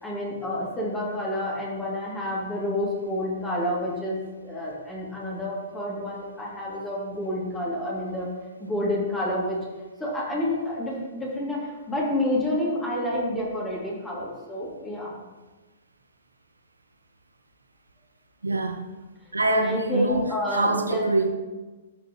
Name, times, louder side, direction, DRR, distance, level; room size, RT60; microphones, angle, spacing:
voice 1, 0.0-8.3 8.6-9.6 10.0-15.2 19.5-21.0, left 1 dB, 15° left, -5 dB, 2.7 m, -29 dB
voice 2, 18.4-18.9 19.3-21.3, right 2 dB, 85° right, 6 dB, 0.8 m, -25 dB
13.0 x 6.4 x 3.1 m, 1.2 s
figure-of-eight pair, 115°, 0 cm